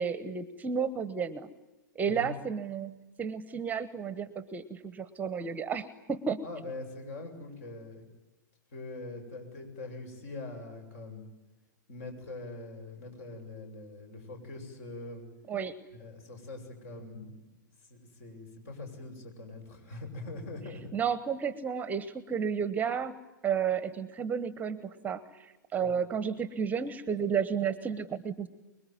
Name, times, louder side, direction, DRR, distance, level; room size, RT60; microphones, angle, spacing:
voice 1, 0.0-1.5 1.9-6.4 15.5-15.8 20.9-23.1 23.4-28.5, right 7 dB, 15° right, 16 dB, 1.1 m, -32 dB
voice 2, 6.4-8.0 8.7-11.2 11.9-15.2 15.9-17.4 17.8-20.9 25.8-25.9, left 2 dB, 50° left, 5 dB, 7.9 m, -43 dB
25.5 x 22.5 x 9.5 m, 1.1 s
figure-of-eight pair, 110°, 10 cm